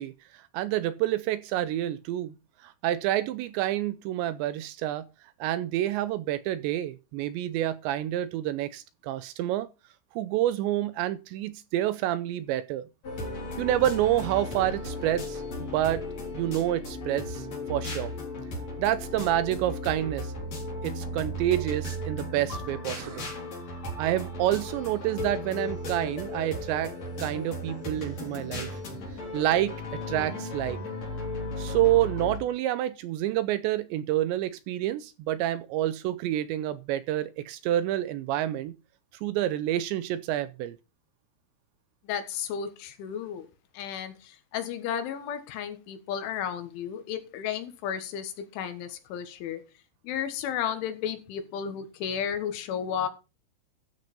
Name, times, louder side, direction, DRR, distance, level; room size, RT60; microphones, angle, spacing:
voice 1, 0.0-2.4 2.6-5.0 5.4-9.7 10.1-12.8 13.6-16.0 16.3-18.1 18.8-20.3 20.8-23.3 24.0-26.9 27.2-28.7 29.3-29.8 30.1-30.8 31.6-38.7 39.2-40.8, right 13 dB, 80° right, 2.7 m, -28 dB
sound 1, 13.0-32.4, left 1 dB, 35° left, 4.9 m, -35 dB
voice 2, 42.0-43.5 43.7-49.6 50.0-53.1, left 8 dB, 80° left, 3.9 m, -33 dB
13.0 x 6.5 x 5.4 m
omnidirectional pair, 5.5 m